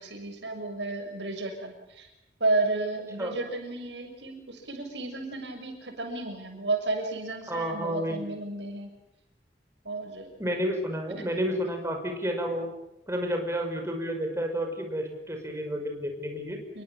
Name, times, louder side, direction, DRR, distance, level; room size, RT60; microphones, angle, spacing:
voice 1, 0.0-2.1 2.4-8.9 9.8-10.4 16.7-16.8, right 2 dB, 90° right, 5 dB, 6.5 m, -32 dB
voice 2, 7.5-8.3 10.4-12.7 13.1-16.6, equal, 15° right, 3 dB, 5.5 m, -30 dB
28.0 x 23.0 x 7.3 m, 0.88 s
head